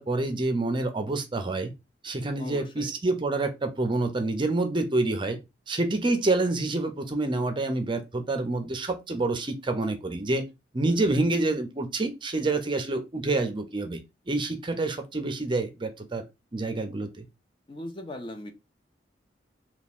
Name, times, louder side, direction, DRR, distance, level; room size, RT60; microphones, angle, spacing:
voice 1, 0.0-1.7 2.0-5.4 5.7-10.5 10.7-14.0 14.3-16.2 16.5-17.2, right 2 dB, 25° right, 0.5 m, -27 dB
voice 2, 2.4-2.9 10.9-11.4 17.7-18.5, left 1 dB, 25° left, 0.5 m, -40 dB
3.4 x 2.3 x 4.1 m
head